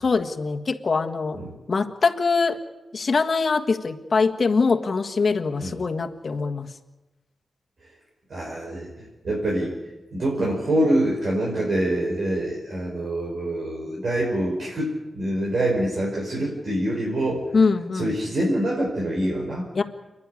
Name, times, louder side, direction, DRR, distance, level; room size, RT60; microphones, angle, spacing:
voice 1, 0.0-1.4 1.7-2.6 2.9-6.7 17.5-18.1 19.7-19.8, left 4 dB, 45° left, 5 dB, 1.6 m, -23 dB
voice 2, 8.3-9.7 10.1-17.5 17.9-19.7, right 1 dB, 55° right, -3 dB, 5.2 m, -25 dB
29.0 x 11.0 x 9.9 m, 1.1 s
wide cardioid pair, 125°, 0 cm